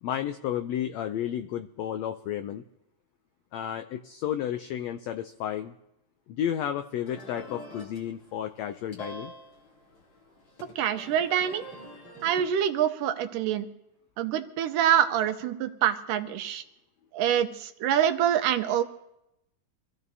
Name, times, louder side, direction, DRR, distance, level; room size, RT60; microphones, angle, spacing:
voice 1, 0.0-2.6 3.5-5.7 6.3-9.3, left 10 dB, 85° left, 8 dB, 1.5 m, -32 dB
sound 1, 7.1-12.4, equal, 40° left, 3.6 m, -46 dB
voice 2, 10.8-11.7 12.2-13.7 14.2-16.6 17.1-18.8, right 10 dB, 85° right, 7 dB, 2.5 m, -25 dB
26.0 x 14.5 x 2.7 m, 0.87 s
omnidirectional pair, 3.7 m